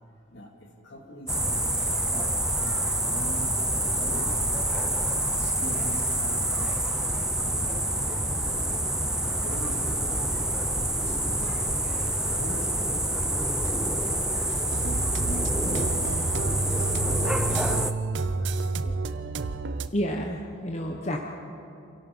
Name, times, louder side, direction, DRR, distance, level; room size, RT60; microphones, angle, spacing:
voice 1, 0.8-2.4 2.6-4.4 5.2-6.7 7.0-8.4 8.9-10.4 10.9-12.9 13.6-14.9 15.3-19.0, equal, 60° left, 1 dB, 3.0 m, -43 dB
sound 1, 1.3-17.9, right 1 dB, 5° right, 0.6 m, -27 dB
sound 2, 14.7-19.9, right 3 dB, 65° right, 0.7 m, -30 dB
voice 2, 19.9-21.2, equal, 35° left, 1 dB, 1.1 m, -29 dB
27.5 x 17.0 x 5.5 m, 2.8 s
head